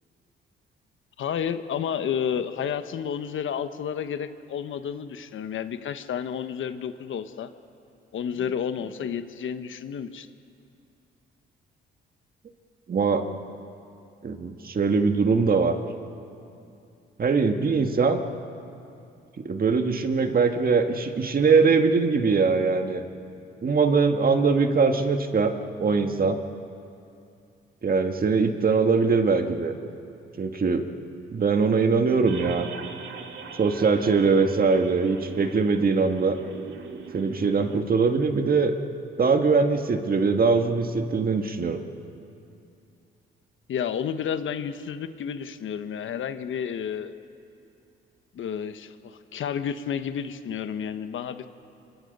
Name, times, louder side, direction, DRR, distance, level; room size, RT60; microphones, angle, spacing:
voice 1, 1.2-7.5 8.1-10.3 43.7-47.2 48.3-51.5, left 8 dB, 70° left, 10 dB, 1.2 m, -31 dB
voice 2, 12.9-13.2 14.2-15.8 17.2-18.2 19.4-23.0 23.6-25.5 25.8-26.4 27.8-29.8 30.4-30.8 31.3-32.7 33.5-36.4 37.1-38.7 39.2-41.8, right 4 dB, 45° right, 6 dB, 1.8 m, -22 dB
sound 1, 32.3-37.8, right 5 dB, 65° right, 2.1 m, -40 dB
27.5 x 24.0 x 5.5 m, 2.6 s
cardioid pair, 80°, 21 cm